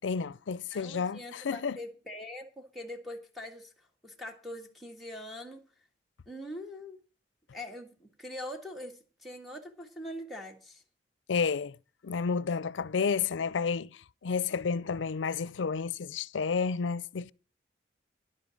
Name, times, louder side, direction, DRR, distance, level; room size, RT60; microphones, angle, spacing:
voice 1, 0.0-1.8 11.3-11.8 12.0-13.9 14.2-17.3, left 5 dB, 90° left, 0.5 m, -31 dB
voice 2, 0.7-5.6 6.3-7.0 7.5-10.8, left 1 dB, ahead, 1.7 m, -43 dB
11.0 x 8.8 x 6.3 m
head